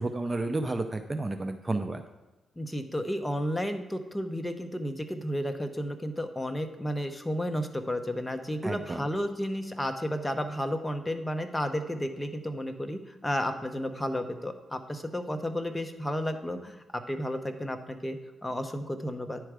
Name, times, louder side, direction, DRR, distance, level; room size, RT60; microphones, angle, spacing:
voice 1, 0.0-2.0 8.6-9.1, right 2 dB, 25° right, 8 dB, 0.5 m, -31 dB
voice 2, 2.6-19.4, equal, 10° left, 7 dB, 0.8 m, -32 dB
10.0 x 4.6 x 4.9 m, 1.2 s
cardioid pair, 80°, 0 cm